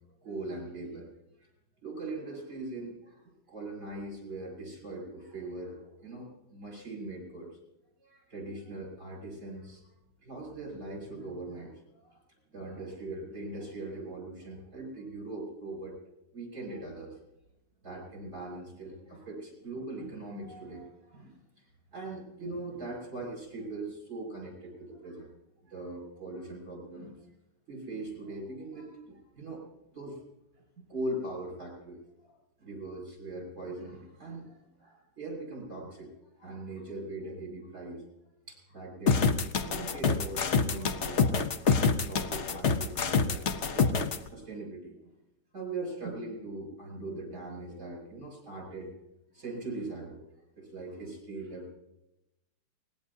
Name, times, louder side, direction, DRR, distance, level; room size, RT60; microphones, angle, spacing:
voice 1, 0.2-1.1 1.4-1.5 1.8-3.2 3.5-7.6 8.0-9.8 10.2-12.2 12.5-15.9 16.3-17.2 17.8-21.4 21.9-25.3 25.6-27.2 27.7-29.6 29.9-30.2 30.8-32.3 32.6-38.0 38.5-39.2 39.6-41.5 41.8-45.1 45.5-48.9 49.3-50.2 50.6-51.7, right 2 dB, 35° right, -2 dB, 6.7 m, -41 dB
sound 1, 39.1-44.2, left 5 dB, 65° left, 0.7 m, -26 dB
24.5 x 20.0 x 2.8 m, 0.90 s
omnidirectional pair, 2.4 m